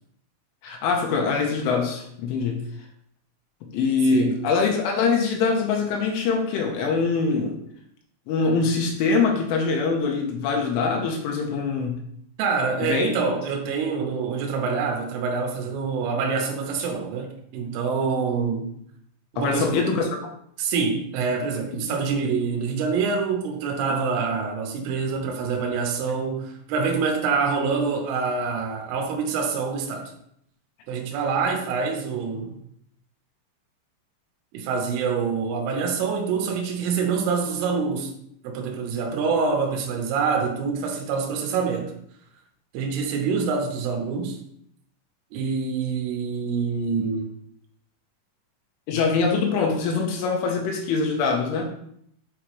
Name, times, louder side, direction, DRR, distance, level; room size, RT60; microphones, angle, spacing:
voice 1, 0.6-2.6 3.6-7.6 8.3-12.0 12.8-13.1 19.4-20.1 21.9-22.0 48.9-51.7, left 4 dB, 80° left, 2 dB, 3.2 m, -23 dB
voice 2, 12.4-18.7 19.3-19.9 20.6-30.1 30.9-32.6 34.5-38.1 38.4-41.9 42.7-44.4 45.3-47.3, right 5 dB, 80° right, 2 dB, 3.6 m, -26 dB
8.4 x 4.9 x 3.0 m, 0.69 s
omnidirectional pair, 5.8 m